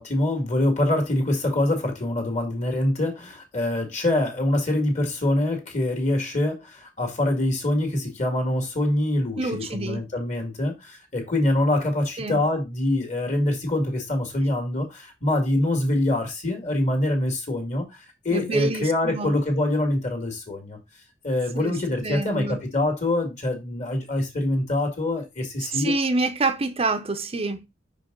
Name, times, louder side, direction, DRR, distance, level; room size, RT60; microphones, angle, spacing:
voice 1, 0.0-18.0 18.2-20.8 21.2-25.9, left 1 dB, 40° left, 2.0 m, -25 dB
voice 2, 9.4-10.1 12.2-12.4 18.3-19.3 21.5-21.7 22.0-22.6 25.7-27.7, right 3 dB, 30° right, 0.7 m, -26 dB
5.6 x 5.1 x 3.8 m
head